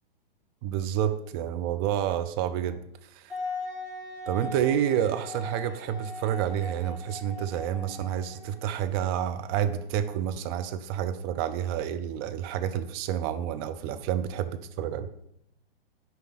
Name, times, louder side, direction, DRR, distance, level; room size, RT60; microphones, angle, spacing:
voice 1, 0.6-3.3 4.3-15.1, right 10 dB, 25° right, 9 dB, 0.4 m, -29 dB
Wind instrument woodwind instrument, 3.3-8.9, left 2 dB, ahead, 2.4 m, -39 dB
6.3 x 5.2 x 4.2 m, 0.77 s
figure-of-eight pair, 110°, 30 cm